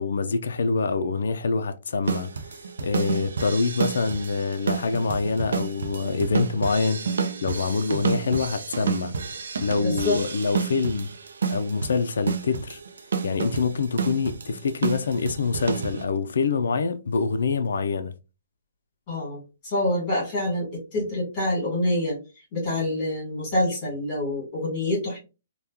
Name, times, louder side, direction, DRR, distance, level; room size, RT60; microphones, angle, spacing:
voice 1, 0.0-2.3 2.8-7.1 7.4-9.1 9.6-11.1 11.5-12.8 13.2-18.1, left 4 dB, 75° left, 0.4 m, -25 dB
sound 1, 2.1-16.0, right 5 dB, 80° right, 0.5 m, -30 dB
voice 2, 9.8-10.2 19.1-22.2 22.5-25.2, left 1 dB, 25° left, 1.9 m, -26 dB
3.5 x 2.2 x 2.7 m
hypercardioid pair, 175°, 0 cm